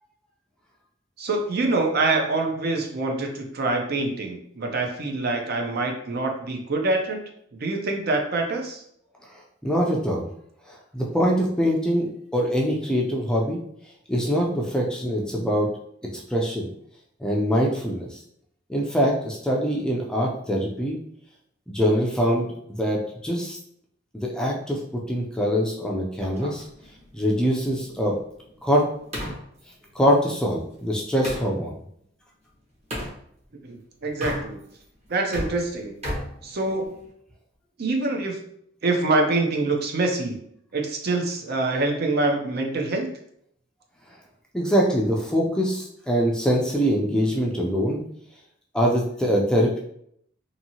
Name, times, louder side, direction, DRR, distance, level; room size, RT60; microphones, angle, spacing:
voice 1, 1.2-7.2 7.5-8.8 33.6-34.6 35.1-35.9 36.4-37.0 37.8-38.4 38.8-40.4 40.7-43.1, right 2 dB, 55° right, 3 dB, 0.5 m, -25 dB
voice 2, 9.6-10.3 10.9-13.6 14.1-15.7 16.3-16.7 17.2-18.1 18.7-21.0 21.7-23.6 24.1-26.6 27.1-28.2 28.6-28.8 30.0-31.7 44.5-48.0 48.7-49.8, equal, 5° left, -2 dB, 0.4 m, -23 dB
sound 1, 26.2-31.5 32.9-33.2 34.1-34.8 35.1-37.1, equal, 35° right, 0.9 m, -36 dB
2.7 x 2.6 x 2.8 m, 0.70 s
head